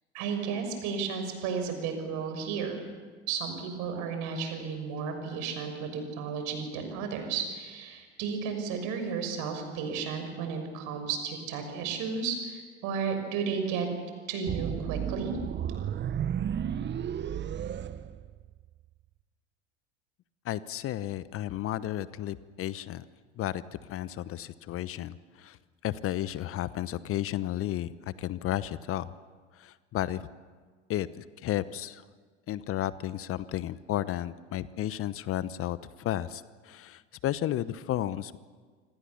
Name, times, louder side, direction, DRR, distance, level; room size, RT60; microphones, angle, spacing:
voice 1, 0.1-2.9 3.3-13.9 14.3-15.4, right 6 dB, 55° right, 6 dB, 6.5 m, -33 dB
sound 1, 14.5-18.7, right 9 dB, 30° right, 1.2 m, -33 dB
voice 2, 20.4-23.0 23.4-25.6 25.8-27.9 28.2-29.1 29.5-30.3 30.9-32.0 32.5-38.4, left 12 dB, 40° left, 16 dB, 1.0 m, -33 dB
27.5 x 25.0 x 7.1 m, 1.5 s
figure-of-eight pair, 75°, 36 cm